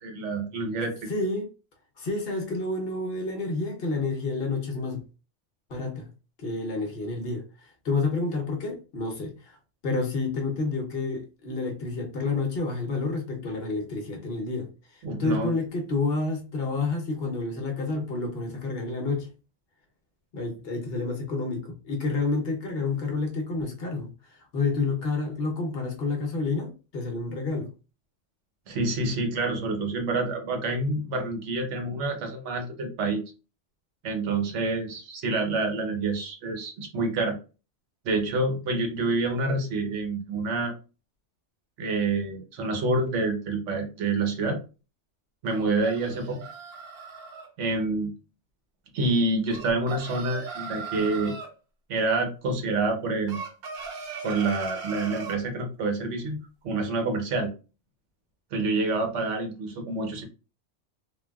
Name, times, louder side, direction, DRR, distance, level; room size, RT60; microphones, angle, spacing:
voice 1, 0.0-1.1 15.0-15.5 28.7-33.2 34.0-37.4 38.0-40.7 41.8-44.6 45.4-46.4 47.6-48.1 48.9-51.3 51.9-53.4 54.2-56.4 56.6-57.5 58.5-60.2, right 3 dB, 85° right, 4 dB, 1.1 m, -27 dB
voice 2, 1.1-1.5 2.0-5.0 5.7-6.1 6.4-9.6 9.8-19.3 20.3-27.7 46.3-46.4, left 3 dB, 60° left, 2 dB, 0.9 m, -29 dB
sound 1, 45.5-47.5 49.5-51.5 53.3-55.4, right 5 dB, 60° right, 0.8 m, -38 dB
3.2 x 2.2 x 2.2 m, 0.32 s
omnidirectional pair, 1.2 m